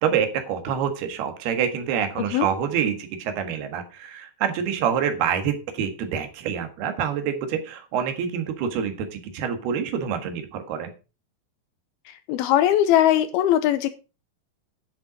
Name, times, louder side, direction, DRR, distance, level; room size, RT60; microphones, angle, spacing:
voice 1, 0.0-10.9, right 8 dB, 80° right, 7 dB, 3.6 m, -26 dB
voice 2, 12.3-13.9, left 11 dB, 80° left, 12 dB, 2.6 m, -19 dB
10.5 x 6.9 x 5.0 m, 0.32 s
omnidirectional pair, 4.6 m